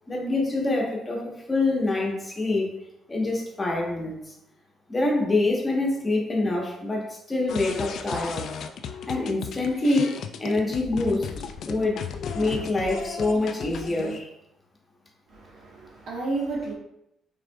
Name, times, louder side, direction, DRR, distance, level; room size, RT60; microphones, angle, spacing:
voice 1, 0.1-1.2 1.5-2.7 3.1-4.2 4.9-8.5 9.1-11.3 11.6-12.0 12.3-14.3, left 2 dB, 25° left, -1 dB, 1.1 m, -25 dB
sound 1, 7.5-14.2, left 6 dB, 70° left, 0.3 m, -35 dB
voice 2, 15.3-16.7, right 3 dB, 65° right, -2 dB, 1.2 m, -31 dB
4.8 x 3.6 x 2.3 m, 0.81 s
cardioid pair, 80°, 0 cm